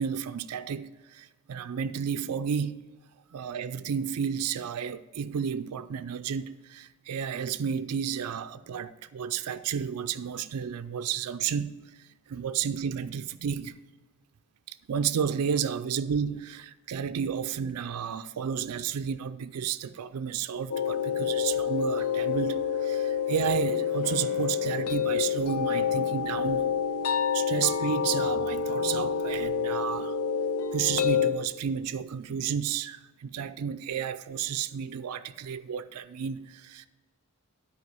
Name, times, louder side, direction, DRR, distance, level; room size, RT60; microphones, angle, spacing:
voice 1, 0.0-2.8 3.3-11.8 12.3-13.7 14.9-26.7 27.3-30.2 30.7-36.9, right 7 dB, 85° right, 0.4 m, -32 dB
sound 1, 20.7-31.3, left 7 dB, 70° left, 0.5 m, -28 dB
sound 2, 23.0-23.4 24.0-27.7, right 1 dB, 45° left, 2.9 m, -50 dB
9.8 x 4.4 x 6.7 m
head